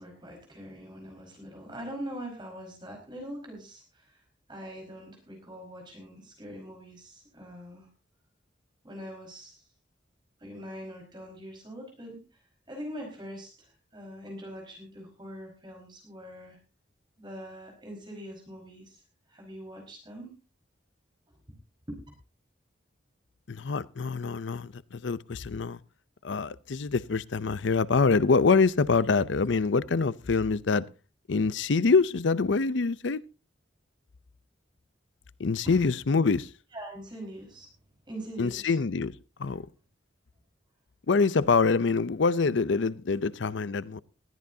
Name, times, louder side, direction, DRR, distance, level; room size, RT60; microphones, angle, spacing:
voice 1, 0.0-4.2 4.5-7.9 8.8-9.6 10.4-12.4 12.7-16.6 17.2-19.0 19.3-20.3 21.9-22.0 35.6-35.7 36.7-37.7 38.1-38.8, equal, 25° right, 4.8 m, -43 dB
voice 2, 23.5-25.8 26.2-30.8 31.3-33.2 35.4-36.5 38.4-39.7 41.1-44.0, left 4 dB, 75° left, 0.6 m, -25 dB
20.0 x 14.0 x 2.8 m
head